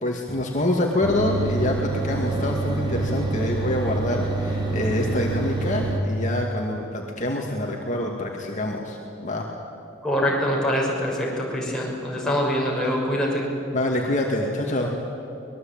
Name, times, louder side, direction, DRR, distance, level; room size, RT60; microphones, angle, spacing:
voice 1, 0.0-9.0 9.2-9.4 13.7-14.9, left 1 dB, 40° left, 0 dB, 2.3 m, -26 dB
sound 1, 1.0-6.0, right 3 dB, 25° right, 2.8 m, -27 dB
voice 2, 10.0-13.5, equal, 5° left, -4 dB, 5.9 m, -24 dB
24.0 x 21.0 x 9.0 m, 2.7 s
head